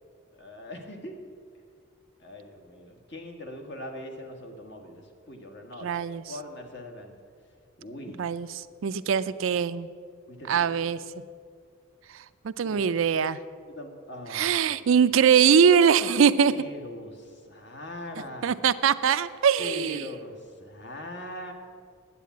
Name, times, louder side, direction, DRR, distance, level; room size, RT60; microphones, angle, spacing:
voice 1, 0.4-1.2 2.2-5.9 6.3-7.1 7.8-8.2 10.3-10.9 12.6-12.9 13.7-14.7 16.5-18.5 19.6-21.5, left 1 dB, 55° left, 3 dB, 1.7 m, -41 dB
voice 2, 5.8-6.2 8.2-9.9 10.5-11.0 12.4-13.4 14.3-16.5 18.4-20.1, right 7 dB, 70° right, 14 dB, 0.4 m, -22 dB
10.5 x 8.3 x 9.3 m, 2.1 s
head